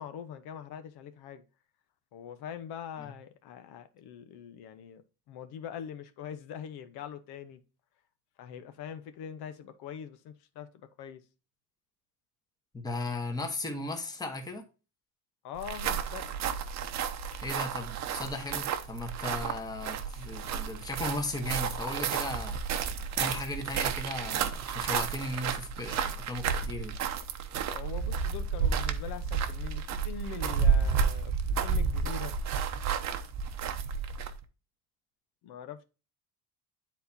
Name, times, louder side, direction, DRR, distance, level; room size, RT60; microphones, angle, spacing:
voice 1, 0.0-1.4 2.1-7.6 8.4-11.2 15.4-16.4 27.6-32.3 35.4-35.8, left 8 dB, 70° left, 1.0 m, -43 dB
voice 2, 12.7-14.6 17.4-22.6 23.2-26.9, left 2 dB, 10° left, 1.1 m, -36 dB
sound 1, 15.6-34.4, right 6 dB, 40° right, 0.8 m, -31 dB
10.0 x 4.3 x 2.7 m
cardioid pair, 175°, 40 cm